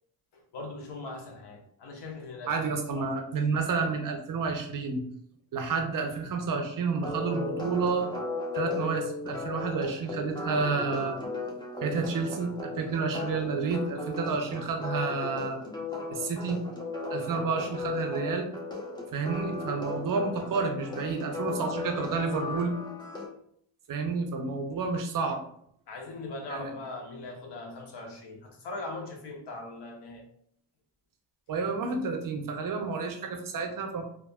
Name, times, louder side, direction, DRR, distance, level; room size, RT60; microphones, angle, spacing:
voice 1, 0.5-2.6 2.9-3.2 16.1-16.3 16.9-17.2 25.9-30.2, left 2 dB, 55° left, 0 dB, 1.0 m, -40 dB
voice 2, 2.5-5.0 5.5-8.1 8.5-11.2 11.8-15.6 16.1-16.6 17.1-18.5 19.1-22.8 23.9-25.4 26.5-26.7 31.5-34.0, right 4 dB, 45° right, 5 dB, 0.6 m, -30 dB
sound 1, 7.0-23.3, left 3 dB, 10° left, 0.7 m, -36 dB
3.4 x 2.3 x 2.3 m, 0.68 s
cardioid pair, 70°, 49 cm